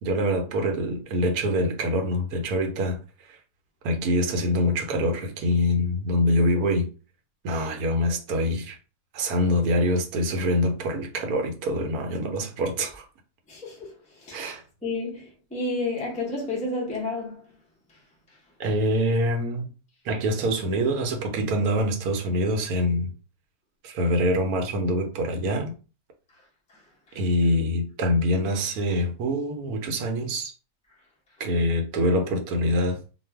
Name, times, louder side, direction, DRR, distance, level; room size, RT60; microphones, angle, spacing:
voice 1, 0.0-3.0 3.8-6.9 7.4-8.8 9.1-13.0 14.3-14.6 18.6-19.7 20.0-23.1 23.8-25.7 27.1-30.5 31.4-33.0, equal, 80° right, 1.1 m, -25 dB
voice 2, 13.5-14.5 14.8-17.5 26.3-26.4 26.7-26.8 27.1-27.2, left 2 dB, 10° left, 0.3 m, -31 dB
2.5 x 2.2 x 3.3 m
omnidirectional pair, 1.6 m